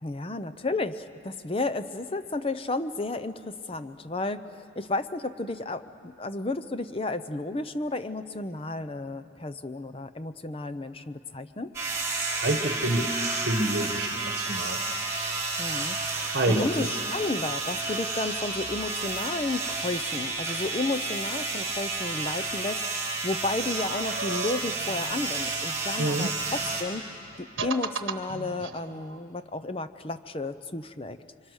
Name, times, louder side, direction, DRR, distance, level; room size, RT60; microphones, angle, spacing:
voice 1, 0.0-11.7 15.6-27.0 27.4-31.2, left 2 dB, 30° left, 11 dB, 0.6 m, -32 dB
sound 1, 11.7-26.8, right 3 dB, 15° right, 4.9 m, -31 dB
voice 2, 12.4-14.8 16.3-16.9 26.0-26.3, right 1 dB, 55° right, 4 dB, 1.3 m, -28 dB
sound 2, 23.8-26.5 27.2-29.2, right 4 dB, 80° right, 1.0 m, -38 dB
28.5 x 25.0 x 6.4 m, 2.6 s
head